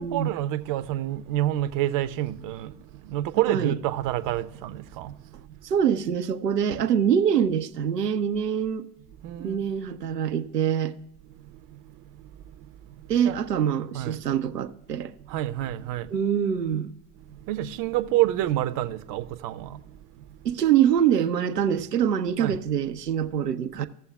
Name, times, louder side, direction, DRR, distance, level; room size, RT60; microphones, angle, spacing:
voice 1, 0.0-5.8 9.2-9.7 11.2-13.4 13.9-14.3 14.9-16.2 17.2-20.6 22.4-22.6 23.7-23.9, right 14 dB, 45° right, 0.6 m, -29 dB
voice 2, 5.6-8.9 9.4-10.9 13.1-15.1 16.1-16.9 20.4-23.9, right 8 dB, 90° right, 0.5 m, -24 dB
16.0 x 6.9 x 2.3 m
figure-of-eight pair, 65°, 47 cm